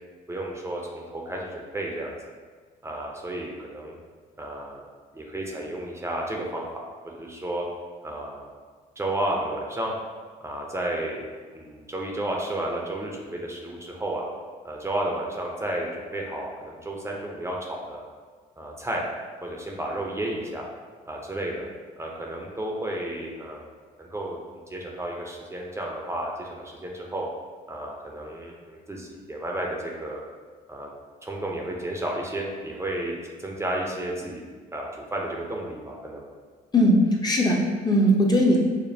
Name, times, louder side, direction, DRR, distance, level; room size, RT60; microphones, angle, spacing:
voice 1, 0.3-2.1 2.8-4.0 4.4-4.8 5.1-6.7 7.0-7.6 8.0-8.5 9.0-9.9 10.4-11.2 11.5-14.2 14.6-18.0 18.6-19.0 19.4-20.7 21.1-21.6 22.0-23.7 24.0-24.4 24.7-27.3 27.7-30.2 30.7-30.9 31.2-34.4 34.7-36.2, right 1 dB, 15° right, -1 dB, 0.6 m, -32 dB
voice 2, 36.7-38.6, equal, 25° left, -1 dB, 0.7 m, -19 dB
5.1 x 2.1 x 2.7 m, 1.5 s
supercardioid pair, 75°, 17 cm